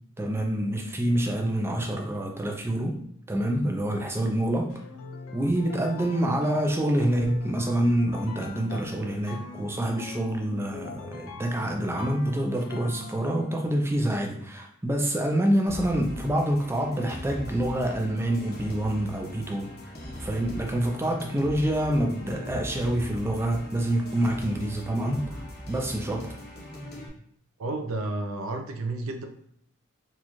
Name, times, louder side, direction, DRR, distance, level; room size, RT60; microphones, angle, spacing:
voice 1, 0.2-3.0 3.3-4.8 5.3-19.9 20.2-26.3, right 1 dB, 10° right, 2 dB, 0.4 m, -27 dB
sound 1, 4.7-13.9, left 4 dB, 85° left, 0.5 m, -43 dB
sound 2, 15.7-27.1, equal, 50° left, 0.9 m, -40 dB
voice 2, 27.6-29.3, right 2 dB, 75° right, 5 dB, 0.5 m, -31 dB
4.1 x 2.4 x 3.0 m, 0.73 s
head